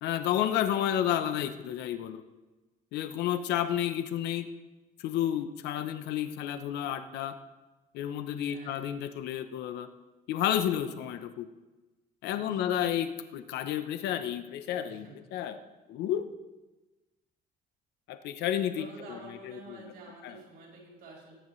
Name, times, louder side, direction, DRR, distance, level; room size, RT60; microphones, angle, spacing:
voice 1, 0.0-2.2 2.9-4.5 5.0-7.4 7.9-9.9 10.3-11.5 12.2-15.6 15.9-16.3 18.1-19.2 19.5-19.8 20.2-20.3, left 10 dB, 80° left, 9 dB, 0.8 m, -31 dB
voice 2, 8.4-8.9 12.3-12.6 14.9-15.2 18.7-21.3, right 3 dB, 70° right, -4 dB, 4.3 m, -49 dB
18.5 x 10.0 x 3.2 m, 1.1 s
cardioid pair, 110°, 17 cm